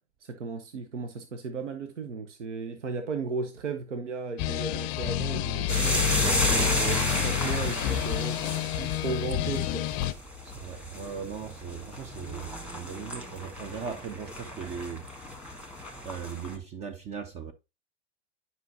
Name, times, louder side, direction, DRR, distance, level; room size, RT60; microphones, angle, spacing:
voice 1, 0.2-6.1 6.5-8.4 8.7-9.9, right 4 dB, 85° right, 0.8 m, -35 dB
sound 1, 4.4-10.1, left 13 dB, 40° left, 0.5 m, -29 dB
sound 2, 5.7-16.6, left 1 dB, 5° right, 1.4 m, -32 dB
voice 2, 10.4-15.1 16.0-17.5, right 7 dB, 20° right, 0.3 m, -38 dB
9.2 x 5.4 x 2.6 m
hypercardioid pair, 95°, 35 cm